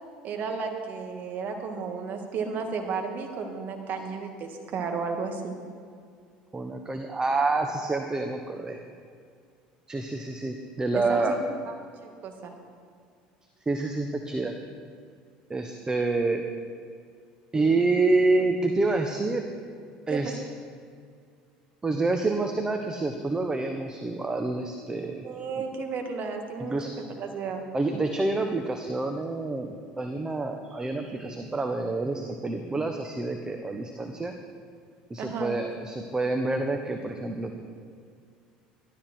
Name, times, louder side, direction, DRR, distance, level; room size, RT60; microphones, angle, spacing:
voice 1, 0.2-5.5 10.9-11.4 11.7-11.8 12.0-12.5 20.1-20.2 25.2-26.8 27.2-27.6 35.2-35.5, right 5 dB, 50° right, 4 dB, 2.3 m, -33 dB
voice 2, 6.5-8.8 9.9-11.4 13.7-14.6 15.5-16.4 17.5-19.4 20.1-20.3 21.8-25.2 26.6-26.9 27.7-34.3 35.1-37.5, right 3 dB, 20° right, 5 dB, 1.2 m, -27 dB
14.0 x 13.0 x 4.6 m, 2.2 s
hypercardioid pair, 75°, 4 cm